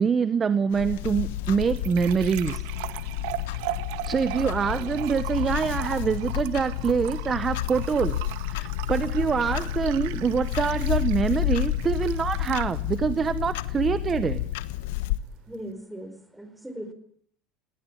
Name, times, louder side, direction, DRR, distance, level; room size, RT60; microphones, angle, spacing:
voice 1, 0.0-2.6 4.0-14.5, right 6 dB, 25° right, 15 dB, 0.9 m, -25 dB
Clock, 0.7-15.2, left 14 dB, 85° left, 1.3 m, -30 dB
sound 1, 0.7-15.7, right 16 dB, 75° right, 1.7 m, -40 dB
voice 2, 15.5-16.9, right 1 dB, 5° right, 9 dB, 4.6 m, -39 dB
20.5 x 18.0 x 9.9 m, 0.63 s
supercardioid pair, 125°, 0 cm